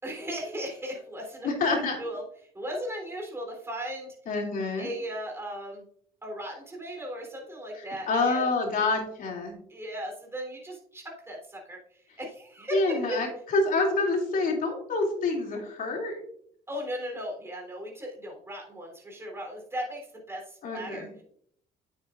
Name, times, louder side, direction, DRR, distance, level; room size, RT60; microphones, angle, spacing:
voice 1, 0.0-1.5 2.0-2.2 2.5-4.1 4.8-5.8 6.2-8.5 9.7-13.2 16.7-21.2, equal, 15° right, 0 dB, 3.6 m, -37 dB
voice 2, 1.4-2.0 4.3-4.9 7.8-9.6 12.7-16.1 20.6-21.1, left 3 dB, 55° left, 1 dB, 2.9 m, -27 dB
9.3 x 8.2 x 2.5 m, 0.66 s
cardioid pair, 110°, 17 cm